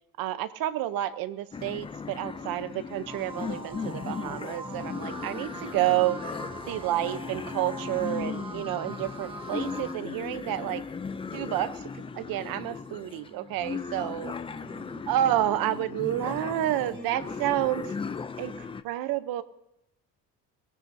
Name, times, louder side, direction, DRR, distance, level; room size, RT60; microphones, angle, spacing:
voice 1, 0.2-6.4 6.7-10.8 11.3-14.3 15.1-17.9 18.4-19.4, right 13 dB, 80° right, 13 dB, 0.9 m, -30 dB
sound 1, 1.5-18.8, left 5 dB, 15° left, 0.5 m, -37 dB
voice 2, 2.2-2.5 5.2-5.5 13.9-14.2 14.5-15.0 16.8-17.5, right 2 dB, 35° right, 0 dB, 6.7 m, -48 dB
sound 2, 3.1-9.9, right 3 dB, 15° right, 1.2 m, -42 dB
22.0 x 19.5 x 2.7 m, 0.88 s
cardioid pair, 165°, 34 cm